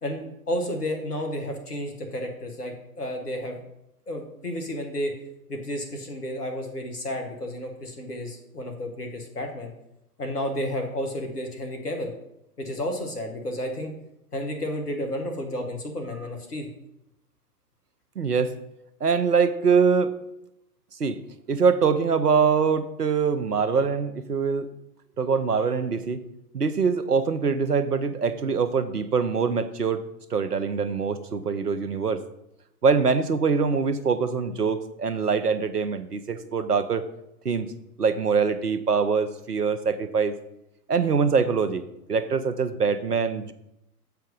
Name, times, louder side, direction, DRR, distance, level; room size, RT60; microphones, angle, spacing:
voice 1, 0.0-3.6 4.1-5.1 5.5-9.7 10.2-12.1 12.6-13.9 14.3-16.7, left 1 dB, 80° left, 3 dB, 1.8 m, -31 dB
voice 2, 18.2-18.5 19.0-20.1 21.0-21.2 21.5-24.7 25.2-26.2 26.5-30.0 30.3-32.2 32.8-37.0 37.4-37.7 38.0-40.4 40.9-43.5, right 5 dB, 85° right, 11 dB, 0.8 m, -23 dB
7.6 x 4.6 x 5.4 m, 0.84 s
figure-of-eight pair, 110°, 46 cm